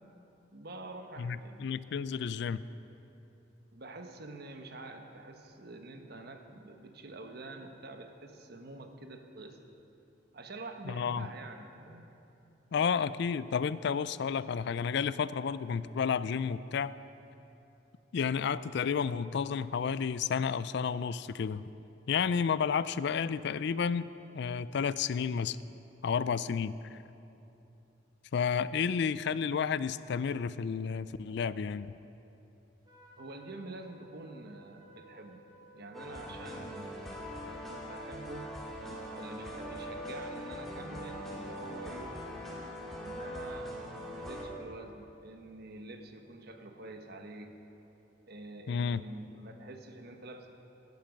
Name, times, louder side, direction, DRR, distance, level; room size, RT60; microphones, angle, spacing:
voice 1, 0.5-1.6 3.7-9.7 10.3-12.1 33.2-35.4 35.7-38.5 39.1-42.2 43.0-47.5 48.3-50.5, right 2 dB, 55° right, 5 dB, 1.2 m, -47 dB
voice 2, 1.2-2.6 10.9-11.3 12.7-16.9 18.1-21.6 22.1-25.6 26.0-26.8 28.3-31.9 48.7-49.0, left 6 dB, 65° left, 16 dB, 0.4 m, -31 dB
Trumpet, 32.9-39.8, right 2 dB, 20° right, 1.9 m, -57 dB
sound 1, 35.9-44.4, equal, ahead, 2.4 m, -42 dB
18.0 x 12.0 x 5.3 m, 2.9 s
head